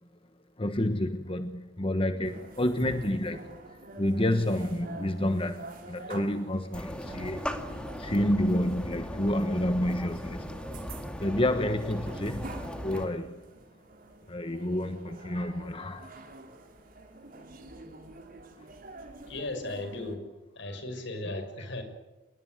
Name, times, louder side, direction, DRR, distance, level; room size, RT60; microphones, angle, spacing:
voice 1, 0.6-7.5 7.9-10.5 11.2-13.3 14.3-16.4 18.6-18.7 21.3-21.7, left 1 dB, 25° left, 8 dB, 1.3 m, -29 dB
sound 1, 2.2-20.2, right 1 dB, 45° right, 4.7 m, -46 dB
sound 2, 6.7-13.1, equal, 5° left, 2.3 m, -38 dB
voice 2, 19.3-20.2 20.5-21.8, left 2 dB, 65° left, 7 dB, 6.3 m, -36 dB
28.0 x 21.5 x 9.5 m, 1.1 s
head